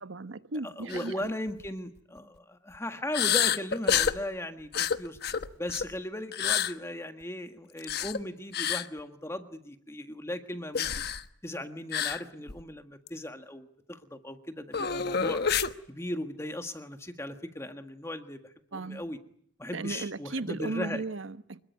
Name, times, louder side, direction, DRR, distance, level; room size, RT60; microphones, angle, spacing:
voice 1, 0.0-1.3 18.7-19.0 19.7-21.6, right 3 dB, 85° right, 1.1 m, -36 dB
voice 2, 0.6-5.2 5.6-10.9 11.4-15.4 15.9-19.2 19.6-21.0, left 1 dB, 15° left, 1.6 m, -37 dB
sound 1, 0.9-1.1 1.5-1.7 3.1-4.2 4.7-5.9 6.3-6.7 7.8-8.2 8.5-8.9 10.7-11.2 11.9-12.2 12.5-12.6 13.1-13.2 14.7-15.7, left 8 dB, 55° left, 1.1 m, -28 dB
26.0 x 21.5 x 9.5 m
head